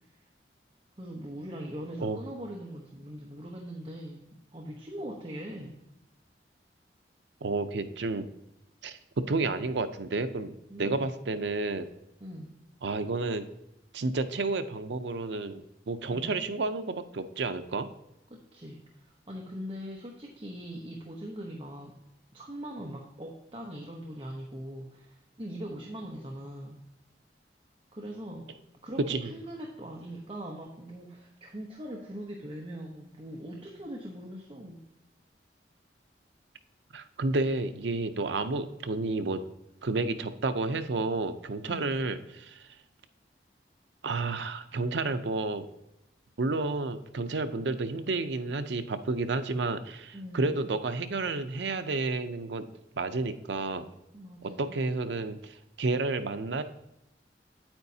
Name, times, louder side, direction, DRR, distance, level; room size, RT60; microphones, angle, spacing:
voice 1, 1.0-4.2 4.5-5.7 10.7-11.1 12.2-12.6 16.1-16.4 18.3-21.9 22.3-26.8 27.9-28.5 28.8-34.8 41.6-42.0 50.1-50.6 54.1-54.8, equal, 30° right, 0 dB, 0.9 m, -41 dB
voice 2, 7.4-8.3 8.8-11.9 12.8-13.5 13.9-17.9 29.0-29.3 36.9-39.4 39.8-42.7 44.0-45.6 46.4-52.7 53.0-53.9 54.4-56.6, right 3 dB, 80° right, 10 dB, 0.6 m, -31 dB
8.8 x 8.8 x 2.8 m, 0.88 s
head